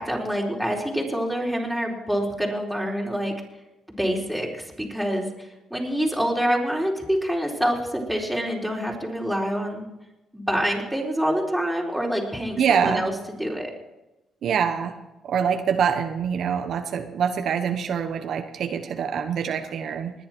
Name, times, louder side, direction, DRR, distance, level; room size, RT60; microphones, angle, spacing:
voice 1, 0.0-3.3 4.0-4.5 4.8-7.8 8.1-9.8 10.3-13.1 13.4-13.7, equal, ahead, -2 dB, 4.2 m, -26 dB
voice 2, 12.6-13.0 14.4-15.0 15.2-20.1, right 7 dB, 65° right, 6 dB, 1.1 m, -25 dB
20.0 x 10.5 x 4.5 m, 0.98 s
cardioid pair, 90°, 0 cm